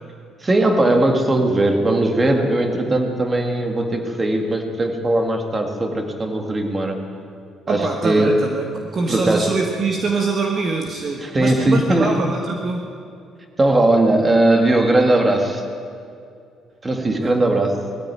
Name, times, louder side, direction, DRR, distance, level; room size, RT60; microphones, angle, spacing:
voice 1, 0.4-7.0 7.7-8.4 9.1-9.5 11.2-12.2 13.6-15.6 16.8-17.8, right 1 dB, 15° right, 4 dB, 1.8 m, -19 dB
voice 2, 7.7-8.6 8.9-12.9 17.2-17.3, right 4 dB, 30° right, 2 dB, 1.3 m, -24 dB
19.5 x 14.0 x 9.8 m, 2.4 s
cardioid pair, 175°, 0 cm